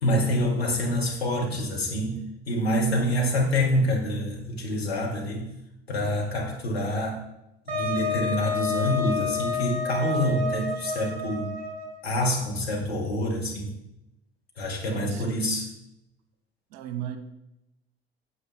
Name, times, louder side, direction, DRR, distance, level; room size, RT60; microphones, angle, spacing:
voice 1, 0.0-5.5 5.9-7.2 7.7-11.5 12.0-13.7 14.6-15.7, equal, 85° left, -2 dB, 1.9 m, -26 dB
Wind instrument woodwind instrument, 7.7-12.0, left 3 dB, 25° right, 3.8 m, -29 dB
voice 2, 14.9-15.5 16.7-17.2, right 11 dB, 60° right, 7 dB, 1.1 m, -35 dB
9.2 x 7.4 x 3.6 m, 0.84 s
figure-of-eight pair, 60°, 30 cm